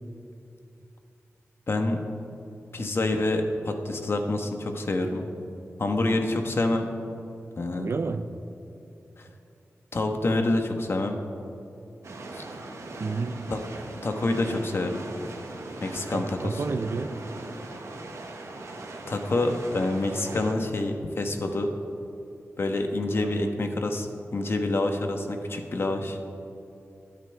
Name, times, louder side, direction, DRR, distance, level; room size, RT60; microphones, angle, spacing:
voice 1, 1.7-2.0 2.7-5.3 5.8-6.9 7.6-7.9 9.9-11.2 12.3-12.4 13.5-13.6 14.0-15.1 15.8-16.6 19.1-21.7 22.6-24.1 24.3-26.2, left 2 dB, 50° left, 4 dB, 1.2 m, -27 dB
voice 2, 7.8-8.4 13.0-13.6 16.1-17.1 23.2-23.6, right 4 dB, 55° right, 10 dB, 0.5 m, -31 dB
sound 1, 12.0-20.5, right 2 dB, 80° right, 1.5 m, -40 dB
23.5 x 9.0 x 3.4 m, 2.8 s
wide cardioid pair, 120°, 5 cm